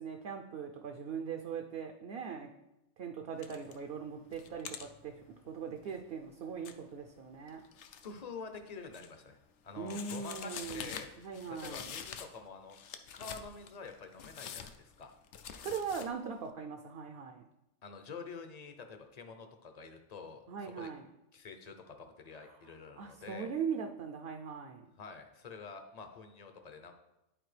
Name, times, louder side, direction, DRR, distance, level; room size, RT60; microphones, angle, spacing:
voice 1, 0.0-2.5 3.0-7.6 9.8-11.9 15.6-17.4 20.5-21.0 23.0-24.9, right 6 dB, 60° right, 4 dB, 0.7 m, -40 dB
sound 1, 3.4-3.8 4.2-8.2 8.6-9.4 9.9-12.4 12.7-16.1, left 8 dB, 75° left, 0.9 m, -47 dB
voice 2, 8.0-9.4 9.6-11.1 11.5-12.8 13.1-15.1 17.8-20.9 21.3-23.5 25.0-26.9, left 5 dB, 40° left, 6 dB, 0.6 m, -47 dB
11.0 x 4.2 x 3.3 m, 0.89 s
omnidirectional pair, 1.2 m